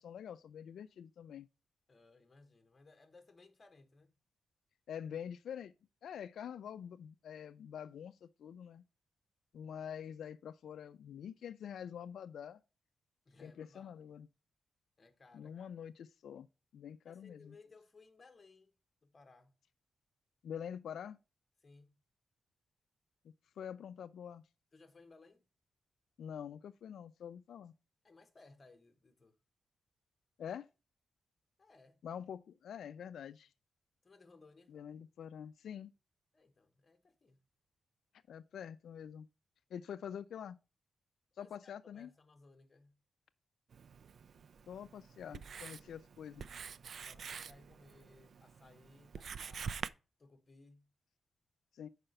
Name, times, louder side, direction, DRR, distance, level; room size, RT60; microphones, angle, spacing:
voice 1, 0.0-1.5 4.9-5.7 6.0-8.8 9.5-12.6 13.4-14.3 15.3-16.5 16.7-17.5 20.4-21.2 23.6-24.4 26.2-27.7 30.4-30.7 32.0-33.5 34.7-35.9 38.3-39.3 39.7-40.6 41.4-42.1 44.7-46.4 51.7-51.9, left 8 dB, 85° left, 0.3 m, -46 dB
voice 2, 1.9-4.2 13.2-14.0 15.0-15.7 17.1-18.7 19.0-19.6 21.6-21.9 24.7-25.4 28.0-29.4 31.6-32.0 34.0-34.8 36.3-37.5 41.4-43.0 47.0-49.8 50.2-50.9, left 3 dB, 25° left, 1.0 m, -62 dB
Writing, 43.7-49.9, right 6 dB, 55° right, 0.3 m, -47 dB
5.6 x 4.9 x 6.4 m
wide cardioid pair, 165°, 0 cm